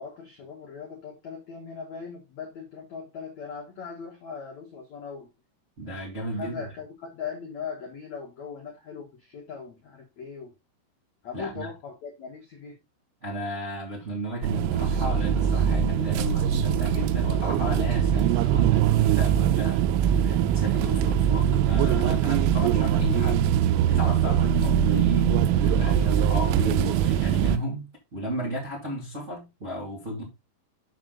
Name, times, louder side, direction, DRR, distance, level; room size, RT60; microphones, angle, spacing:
voice 1, 0.0-5.3 6.2-10.5 11.2-12.8, left 6 dB, 75° left, 1.6 m, -39 dB
voice 2, 5.8-6.7 11.3-11.7 13.2-23.4 23.9-30.2, equal, 40° right, 1.0 m, -33 dB
sound 1, 14.4-27.6, right 9 dB, 90° right, 3.2 m, -22 dB
7.2 x 6.4 x 3.8 m
omnidirectional pair, 5.8 m